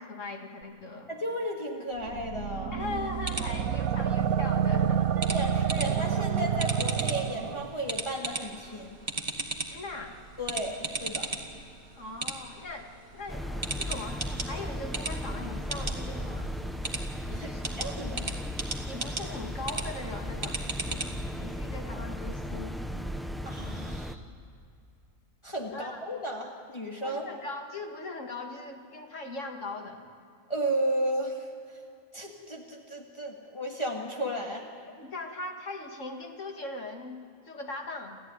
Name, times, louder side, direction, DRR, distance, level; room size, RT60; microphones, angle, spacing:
voice 1, 0.0-1.1 2.7-5.2 9.7-10.2 12.0-16.5 17.3-17.6 18.1-18.3 18.8-20.6 20.9-22.8 25.7-26.0 27.0-30.1 35.0-38.2, left 2 dB, 60° left, 3 dB, 2.5 m, -40 dB
voice 2, 1.1-2.8 5.2-9.0 10.4-11.4 17.3-17.5 17.8-18.3 23.4-24.2 25.4-27.3 30.5-31.5 32.1-34.7, right 1 dB, 20° left, -1 dB, 2.0 m, -34 dB
sound 1, 2.0-7.7, right 8 dB, 80° right, 1.2 m, -28 dB
sound 2, 2.8-21.2, right 3 dB, 35° right, 1.8 m, -38 dB
sound 3, 13.3-24.2, equal, ahead, 0.6 m, -36 dB
29.0 x 14.0 x 9.6 m, 2.3 s
omnidirectional pair, 1.5 m